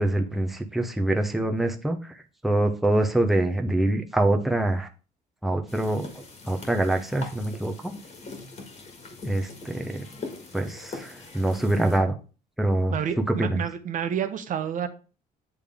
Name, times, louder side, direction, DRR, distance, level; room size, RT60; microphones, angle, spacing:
voice 1, 0.0-2.0 2.4-4.9 5.4-6.1 6.5-7.9 9.2-10.0 10.5-12.1 12.6-13.0 13.4-13.6, right 1 dB, ahead, 4 dB, 0.7 m, -25 dB
sound 1, 5.7-12.0, left 3 dB, 40° left, 1.7 m, -42 dB
voice 2, 12.9-14.9, right 8 dB, 50° right, 9 dB, 0.7 m, -29 dB
8.4 x 3.4 x 3.5 m, 0.35 s
cardioid pair, 110°, 17 cm